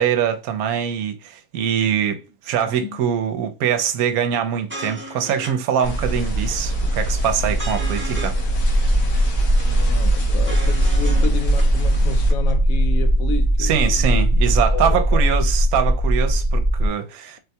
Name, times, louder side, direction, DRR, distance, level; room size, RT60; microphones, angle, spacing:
voice 1, 0.0-8.4 13.6-17.4, right 8 dB, 75° right, 1.1 m, -23 dB
voice 2, 2.7-3.0 9.6-14.3 14.6-15.2, left 5 dB, 70° left, 1.0 m, -31 dB
sound 1, 4.3-4.4 4.7-5.5 5.8-5.9 6.1-6.8 7.1-8.4 8.7-8.8 9.0-9.6 9.9-11.3 11.6-11.7 11.9-12.5, equal, 20° right, 0.3 m, -35 dB
sound 2, 5.8-12.3, right 1 dB, 90° left, 1.6 m, -23 dB
sound 3, 8.6-16.9, equal, 45° left, 1.1 m, -19 dB
4.0 x 2.2 x 2.6 m
omnidirectional pair, 1.6 m